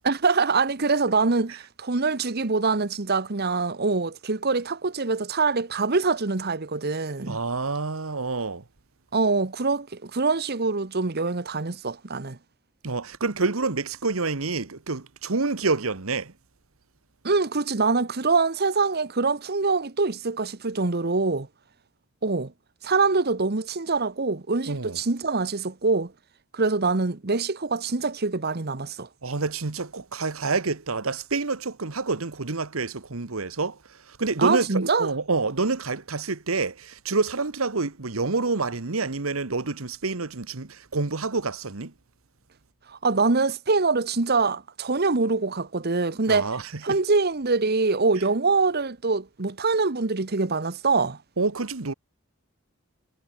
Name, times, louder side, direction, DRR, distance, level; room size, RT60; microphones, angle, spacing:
voice 1, 0.0-7.4 9.1-12.4 17.2-21.5 22.2-22.5 22.8-26.1 26.5-29.1 34.4-35.1 42.9-46.5 46.8-51.2, right 4 dB, 50° right, 1.2 m, -24 dB
voice 2, 7.2-8.6 12.8-16.3 24.7-25.0 29.2-33.8 34.1-41.9 46.3-47.0 48.1-48.2 51.4-51.9, right 3 dB, 80° right, 1.4 m, -28 dB
head